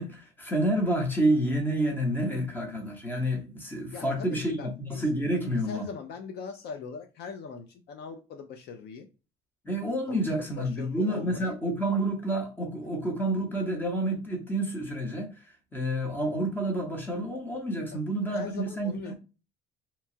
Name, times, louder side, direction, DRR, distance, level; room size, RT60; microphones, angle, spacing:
voice 1, 0.0-5.8 9.6-19.1, right 1 dB, 10° left, 0.8 m, -29 dB
voice 2, 3.9-5.1 5.5-9.1 10.1-11.6 12.8-12.9 17.9-19.1, left 5 dB, 50° left, 0.5 m, -41 dB
2.9 x 2.2 x 2.6 m
cardioid pair, 150°, 21 cm